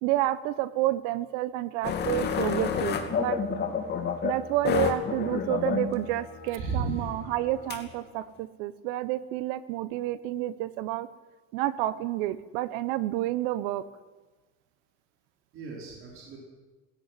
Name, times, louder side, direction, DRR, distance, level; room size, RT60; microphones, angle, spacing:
voice 1, 0.0-3.4 4.2-11.1 11.5-13.9, right 14 dB, 80° right, 16 dB, 1.3 m, -29 dB
sound 1, 1.8-7.9, left 7 dB, 35° left, 2.6 m, -30 dB
voice 2, 6.5-7.1 15.5-16.4, right 4 dB, 45° right, -2 dB, 5.1 m, -34 dB
17.0 x 17.0 x 9.5 m, 1.3 s
cardioid pair, 155°, 31 cm